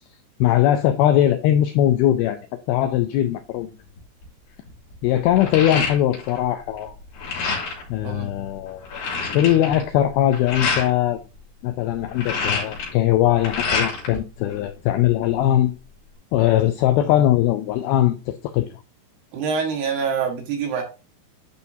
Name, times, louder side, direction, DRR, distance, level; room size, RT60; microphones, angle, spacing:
voice 1, 0.4-2.4 2.7-3.7 5.0-6.9 7.9-8.9 9.3-11.2 11.6-15.7 16.3-18.7, left 12 dB, 85° left, 2.2 m, -20 dB
sound 1, 4.0-4.2 4.7-6.4 6.7-7.9 8.4-8.5 8.7-10.9 11.9-14.2 14.5-15.4, left 4 dB, 70° left, 4.5 m, -27 dB
voice 2, 19.3-20.8, right 6 dB, 75° right, 3.5 m, -25 dB
10.5 x 5.2 x 2.7 m
omnidirectional pair, 4.9 m